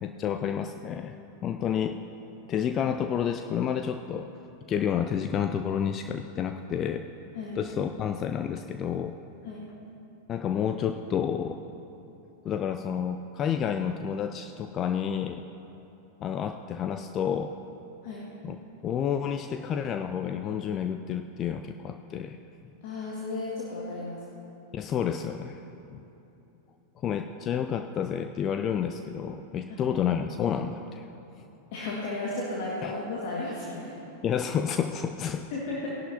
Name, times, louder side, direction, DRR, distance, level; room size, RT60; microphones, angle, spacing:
voice 1, 0.0-1.2 1.4-2.0 2.5-4.3 4.7-7.1 7.6-9.2 10.3-11.6 12.4-15.4 16.2-17.5 18.4-18.6 18.8-22.4 24.7-25.6 25.9-26.0 27.0-31.1 32.8-32.9 34.2-35.4, left 8 dB, 30° left, 7 dB, 0.4 m, -30 dB
voice 2, 22.8-24.2 29.7-29.9 31.7-34.0 35.5-35.9, left 2 dB, 50° left, -5 dB, 1.8 m, -34 dB
18.5 x 11.0 x 2.8 m, 2.9 s
figure-of-eight pair, 90°, 0 cm